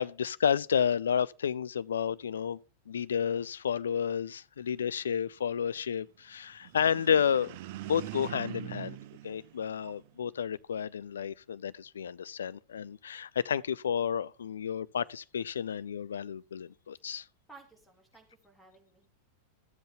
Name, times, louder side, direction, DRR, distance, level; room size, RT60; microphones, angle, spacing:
voice 1, 0.0-2.6 2.9-7.6 7.8-9.0 9.2-17.2, left 8 dB, 65° left, 0.4 m, -31 dB
sound 1, 6.6-10.2, right 15 dB, 50° right, 0.5 m, -43 dB
voice 2, 17.5-19.1, right 4 dB, ahead, 3.0 m, -56 dB
14.0 x 7.7 x 2.7 m
figure-of-eight pair, 90°, 0 cm